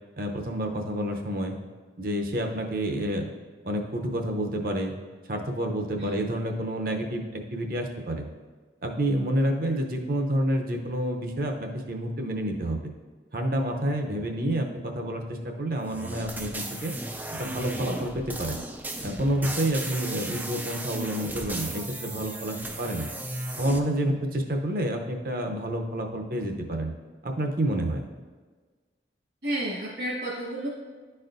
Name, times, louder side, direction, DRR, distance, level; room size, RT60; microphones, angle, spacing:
voice 1, 0.2-1.6 2.0-3.3 3.6-4.9 5.3-8.3 8.8-12.8 13.3-16.9 17.3-18.6 19.0-23.1 23.6-26.9 27.2-28.1, right 1 dB, 50° right, 3 dB, 0.7 m, -29 dB
sound 1, 15.9-23.8, right 2 dB, 10° right, 0.3 m, -36 dB
voice 2, 29.4-30.7, right 1 dB, 75° right, -8 dB, 1.6 m, -31 dB
11.0 x 4.3 x 2.6 m, 1.4 s
head